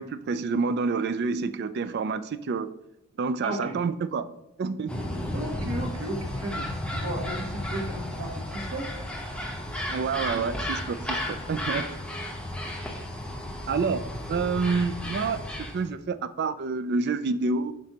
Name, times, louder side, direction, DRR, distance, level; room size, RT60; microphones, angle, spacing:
voice 1, 0.0-2.7 3.2-4.3 4.6-5.1 9.9-11.8 13.7-14.0 14.3-15.4 15.7-17.7, right 4 dB, 50° right, 13 dB, 0.3 m, -28 dB
voice 2, 3.4-3.8 5.3-8.9, right 1 dB, 65° right, 2 dB, 1.3 m, -34 dB
sound 1, 4.9-15.9, left 1 dB, 5° left, 0.8 m, -33 dB
7.5 x 5.1 x 2.9 m, 0.84 s
head